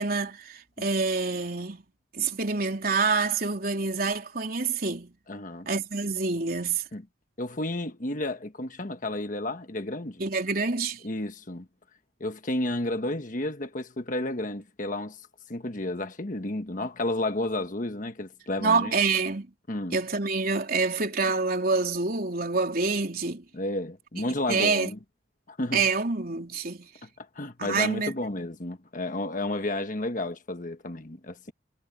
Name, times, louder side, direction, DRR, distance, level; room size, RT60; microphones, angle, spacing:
voice 1, 0.0-1.8 2.1-5.1 5.7-6.8 10.2-11.0 18.6-19.5 19.9-23.4 24.5-24.9 25.7-26.9 27.6-28.1, right 4 dB, 55° right, 3.8 m, -27 dB
voice 2, 5.3-5.7 6.9-7.0 7.4-10.3 11.0-11.7 12.2-15.2 15.5-18.9 19.7-20.0 23.5-25.0 25.5-25.9 27.0-31.5, left 1 dB, 45° left, 1.4 m, -32 dB
head